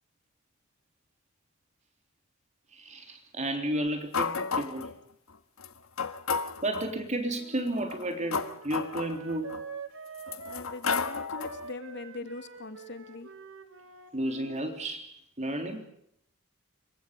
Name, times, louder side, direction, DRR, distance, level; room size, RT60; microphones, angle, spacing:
voice 1, 2.7-4.9 6.6-9.5 14.1-15.1 15.4-15.8, right 1 dB, 35° right, 3.6 m, -32 dB
sound 1, 4.1-4.9 5.6-5.7 6.0-6.9 7.7-9.6 10.2-11.7, left 5 dB, 80° left, 1.5 m, -32 dB
Wind instrument woodwind instrument, 7.3-14.6, right 4 dB, 70° right, 3.0 m, -46 dB
voice 2, 10.5-13.3, left 2 dB, 55° left, 2.8 m, -41 dB
28.5 x 25.0 x 5.3 m
head